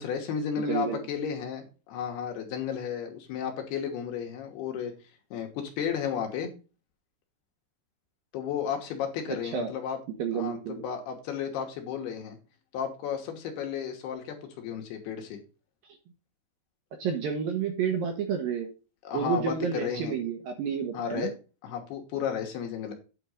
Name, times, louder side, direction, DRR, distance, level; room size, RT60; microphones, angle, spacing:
voice 1, 0.0-4.9 5.3-6.5 8.3-10.0 10.3-12.4 12.7-15.4 19.0-20.1 20.9-21.3 21.6-22.9, left 8 dB, 70° left, 3 dB, 3.1 m, -33 dB
voice 2, 0.6-1.0 9.4-9.7 10.2-10.8 17.0-18.7 19.1-21.3, right 7 dB, 65° right, 4 dB, 2.4 m, -30 dB
9.1 x 4.3 x 6.4 m, 0.33 s
omnidirectional pair, 5.2 m